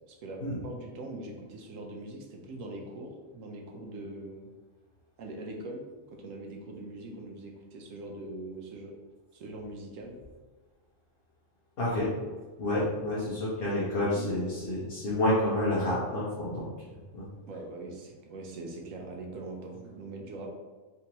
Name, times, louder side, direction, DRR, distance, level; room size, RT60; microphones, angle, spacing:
voice 1, 0.1-4.5 5.2-8.9 9.3-10.2 13.6-14.6 17.4-20.5, right 2 dB, 80° right, 1 dB, 1.0 m, -42 dB
voice 2, 11.8-12.1 12.6-17.3, left 1 dB, 50° left, -8 dB, 1.0 m, -29 dB
3.4 x 3.0 x 2.9 m, 1.3 s
omnidirectional pair, 1.3 m